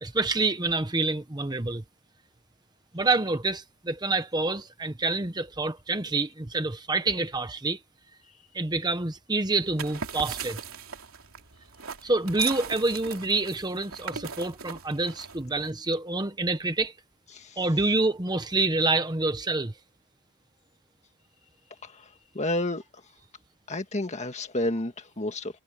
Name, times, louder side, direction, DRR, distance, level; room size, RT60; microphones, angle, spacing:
voice 1, 0.0-1.8 2.9-7.8 8.5-10.6 12.0-16.9 17.6-19.7, right 2 dB, 20° right, 1.0 m, -27 dB
sound 1, 9.6-15.7, right 6 dB, 65° right, 3.3 m, -39 dB
voice 2, 22.3-22.8 23.7-25.6, left 1 dB, 30° left, 1.8 m, -30 dB
head